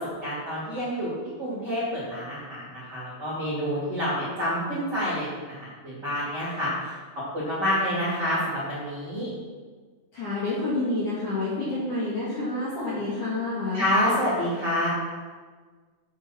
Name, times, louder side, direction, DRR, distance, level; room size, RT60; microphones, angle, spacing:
voice 1, 0.2-5.6 5.8-6.7 7.3-9.3 13.7-14.9, equal, 30° right, -8 dB, 2.3 m, -28 dB
voice 2, 10.1-13.8, left 2 dB, 55° left, -7 dB, 2.5 m, -28 dB
9.0 x 8.0 x 6.1 m, 1.5 s
omnidirectional pair, 5.9 m